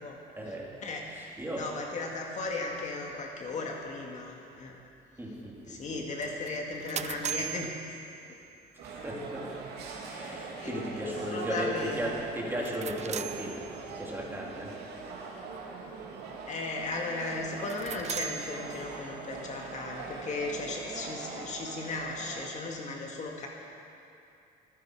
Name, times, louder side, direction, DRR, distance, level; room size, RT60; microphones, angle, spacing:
voice 1, 0.4-0.7 1.1-1.7 5.2-6.3 8.8-9.6 10.1-14.8, right 1 dB, 15° right, -3 dB, 3.2 m, -36 dB
voice 2, 1.5-4.8 5.7-8.0 10.6-10.8 11.3-12.0 16.5-23.5, left 3 dB, 45° left, 0 dB, 2.0 m, -36 dB
sound 1, 6.5-8.7 12.5-14.2 17.5-19.3, right 9 dB, 40° right, 0.6 m, -39 dB
sound 2, 8.8-22.5, right 4 dB, 75° right, 2.5 m, -42 dB
25.5 x 10.5 x 4.9 m, 2.8 s
cardioid pair, 110°, 17 cm